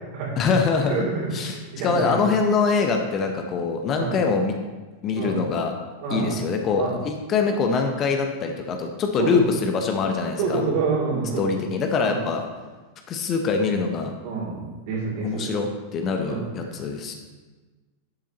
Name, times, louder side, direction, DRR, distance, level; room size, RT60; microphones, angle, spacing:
voice 1, 0.4-1.0 1.3-4.5 5.0-5.7 6.1-10.6 11.4-12.5 13.1-14.1 15.2-17.1, left 5 dB, 30° left, 4 dB, 0.9 m, -24 dB
voice 2, 0.9-1.3 1.7-2.2 3.9-4.2 5.1-5.4 6.0-6.4 6.8-6.9 9.2-9.4 10.4-11.5 11.9-12.2 14.2-15.5 16.2-16.4 16.7-16.8, right 4 dB, 50° right, -3 dB, 3.1 m, -27 dB
11.5 x 7.1 x 3.0 m, 1.3 s
figure-of-eight pair, 90°, 0 cm